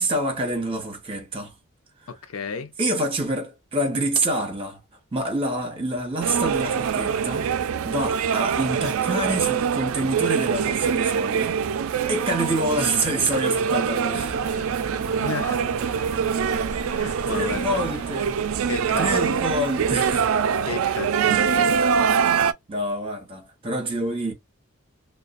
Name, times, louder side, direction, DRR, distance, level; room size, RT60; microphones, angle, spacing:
voice 1, 0.0-1.5 2.8-4.8 5.1-11.6 12.1-14.4 16.7-16.9 17.3-18.3 19.0-20.4 22.7-24.3, right 1 dB, 25° right, 0.9 m, -27 dB
voice 2, 2.1-2.7 15.2-15.7 16.9-18.0 18.7-19.6 20.7-21.7, left 5 dB, 85° left, 0.5 m, -33 dB
sound 1, 6.2-22.5, right 7 dB, 75° right, 0.3 m, -24 dB
sound 2, 14.2-20.3, equal, 15° left, 0.8 m, -40 dB
2.4 x 2.2 x 2.4 m
head